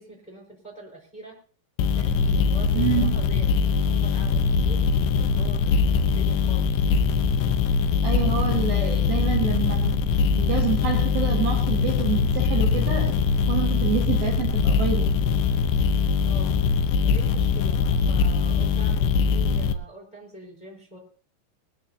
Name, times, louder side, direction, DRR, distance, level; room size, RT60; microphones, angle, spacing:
voice 1, 0.0-1.4 1.9-4.8 5.2-6.6 8.1-8.8 16.2-16.6 17.0-21.0, right 1 dB, 10° left, -2 dB, 4.2 m, -44 dB
sound 1, 1.8-19.7, left 5 dB, 85° left, 2.3 m, -22 dB
voice 2, 2.7-3.2 8.0-13.2 13.5-15.1, right 8 dB, 60° right, 1 dB, 2.8 m, -28 dB
22.0 x 14.0 x 2.8 m, 0.42 s
omnidirectional pair, 5.7 m